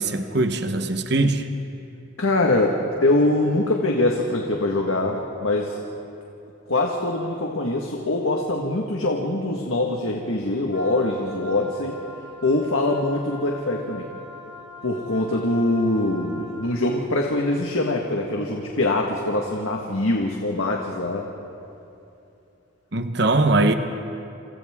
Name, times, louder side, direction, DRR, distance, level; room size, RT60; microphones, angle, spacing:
voice 1, 0.0-1.4 22.9-23.7, right 2 dB, 55° right, 8 dB, 1.1 m, -21 dB
voice 2, 2.2-5.8 6.7-12.0 12.4-14.0 14.8-21.3, left 2 dB, 85° left, 0 dB, 1.7 m, -23 dB
Wind instrument woodwind instrument, 10.7-16.7, left 2 dB, 15° right, 4.4 m, -42 dB
28.5 x 27.0 x 3.7 m, 2.7 s
head